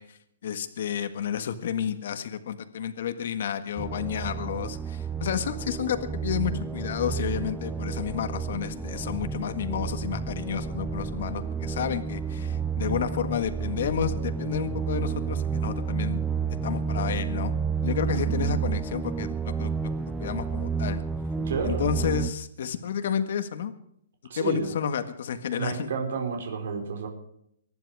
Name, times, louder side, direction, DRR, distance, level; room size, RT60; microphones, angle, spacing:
voice 1, 0.0-16.2 16.6-17.5 17.8-19.7 20.0-21.0 21.6-23.7 24.3-25.9, left 8 dB, 55° left, 10 dB, 1.7 m, -31 dB
sound 1, 3.8-22.3, right 6 dB, 5° right, 0.5 m, -30 dB
voice 2, 18.1-18.6 21.4-21.9 24.3-24.7 25.6-27.1, right 5 dB, 65° right, 3 dB, 4.4 m, -31 dB
23.5 x 11.0 x 4.9 m, 0.73 s
hypercardioid pair, 170°, 0 cm